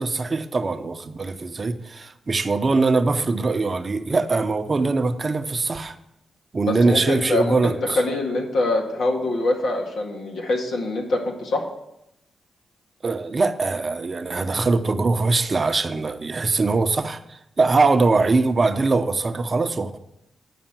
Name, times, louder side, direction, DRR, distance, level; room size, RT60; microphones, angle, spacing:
voice 1, 0.0-5.9 6.5-8.0 13.0-20.0, right 3 dB, 45° right, 9 dB, 0.8 m, -22 dB
voice 2, 6.6-11.7, left 2 dB, 75° left, 0 dB, 1.9 m, -24 dB
10.0 x 5.1 x 7.4 m, 0.83 s
supercardioid pair, 50°, 0 cm